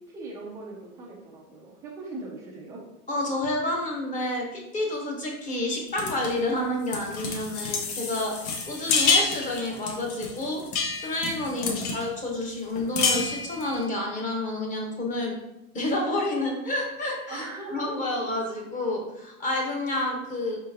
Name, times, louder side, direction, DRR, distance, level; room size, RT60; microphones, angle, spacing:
voice 1, 0.0-2.8 11.6-12.0 17.3-18.0, right 2 dB, 10° right, -3 dB, 0.3 m, -40 dB
voice 2, 3.1-10.6 11.0-15.4 15.7-20.6, left 1 dB, 15° left, 0 dB, 0.9 m, -29 dB
sound 1, 6.0-6.3 6.8-12.0 12.4-12.5 12.8-13.7, left 4 dB, 70° left, 1.2 m, -28 dB
5.0 x 3.8 x 2.7 m, 0.90 s
supercardioid pair, 135°, 44 cm